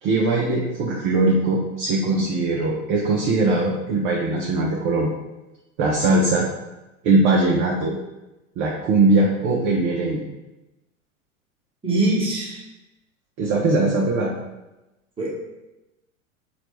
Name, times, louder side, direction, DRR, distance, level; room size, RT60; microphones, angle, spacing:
voice 1, 0.0-5.1 5.8-6.4 7.0-7.9 8.6-10.3 13.4-14.3, right 2 dB, 30° right, -1 dB, 0.4 m, -20 dB
voice 2, 11.8-12.7 15.2-15.3, right 2 dB, 15° right, -4 dB, 0.9 m, -22 dB
4.0 x 2.2 x 3.0 m, 1.0 s
hypercardioid pair, 105°, 43 cm